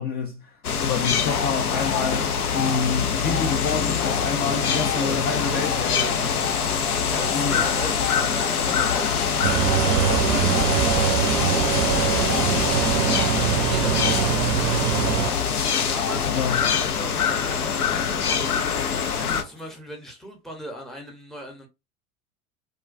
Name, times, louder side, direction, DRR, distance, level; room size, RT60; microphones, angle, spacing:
voice 1, 0.0-6.1 7.3-7.6 16.3-16.6, left 5 dB, 25° left, 0.3 m, -28 dB
sound 1, 0.6-19.4, left 7 dB, 90° left, 0.6 m, -24 dB
sound 2, 1.3-19.8, left 6 dB, 60° left, 0.9 m, -35 dB
voice 2, 4.4-10.7 11.6-12.0 12.5-14.8 15.9-21.7, right 1 dB, ahead, 0.7 m, -38 dB
sound 3, 9.4-15.3, right 11 dB, 50° right, 0.5 m, -23 dB
2.3 x 2.2 x 2.4 m
hypercardioid pair, 85°, 43 cm